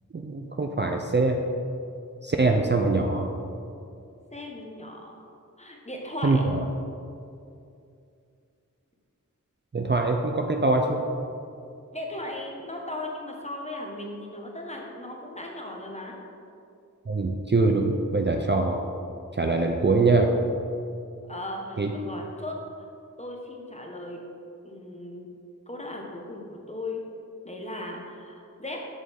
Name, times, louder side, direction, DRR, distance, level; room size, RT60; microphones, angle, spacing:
voice 1, 0.1-1.4 2.2-3.3 6.2-6.6 9.7-11.0 17.1-18.8 19.4-20.3 21.8-21.9, right 3 dB, 35° right, 3 dB, 0.5 m, -23 dB
voice 2, 4.3-5.1 5.6-6.4 11.9-16.2 21.3-22.6 23.2-24.2 24.6-25.3 25.7-27.0 27.4-28.8, left 1 dB, 20° left, 0 dB, 1.0 m, -37 dB
7.3 x 6.4 x 3.5 m, 2.5 s
wide cardioid pair, 45°, 33 cm